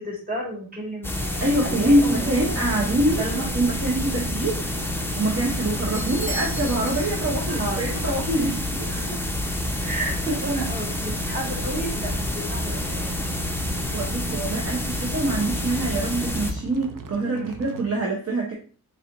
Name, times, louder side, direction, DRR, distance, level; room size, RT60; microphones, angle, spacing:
voice 1, 0.0-2.6 3.2-3.5 7.5-7.8 8.9-9.3 9.8-13.2 14.5-14.7 17.3-17.5, right 1 dB, 25° right, -5 dB, 1.9 m, -32 dB
sound 1, 1.0-16.5, left 1 dB, 5° left, 0.5 m, -28 dB
voice 2, 1.4-3.2 3.5-8.9 13.9-18.5, right 1 dB, 45° right, -3 dB, 0.9 m, -25 dB
sound 2, 1.4-17.8, right 4 dB, 60° right, 0.6 m, -40 dB
Bell / Doorbell, 5.9-7.6, equal, 20° left, 0.9 m, -37 dB
4.2 x 3.5 x 2.6 m, 0.39 s
wide cardioid pair, 105°, 36 cm